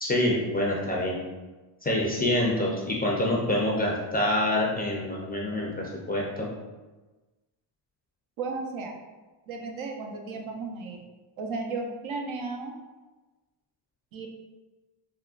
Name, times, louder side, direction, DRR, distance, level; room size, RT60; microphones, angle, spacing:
voice 1, 0.0-1.2 1.8-6.5, left 1 dB, 20° left, -3 dB, 0.4 m, -26 dB
voice 2, 8.4-8.9 9.5-11.0 11.4-12.8 14.1-14.3, right 3 dB, 70° right, 2 dB, 0.7 m, -34 dB
3.6 x 2.1 x 2.4 m, 1.2 s
cardioid pair, 95°, 49 cm